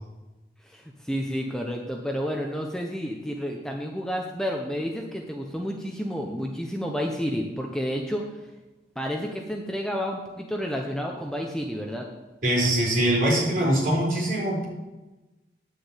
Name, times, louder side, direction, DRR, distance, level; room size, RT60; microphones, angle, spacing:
voice 1, 0.7-8.2 9.0-12.1, equal, 5° left, 1 dB, 0.8 m, -30 dB
voice 2, 12.4-14.6, right 1 dB, 50° right, -3 dB, 4.2 m, -23 dB
9.5 x 6.6 x 8.3 m, 1.1 s
head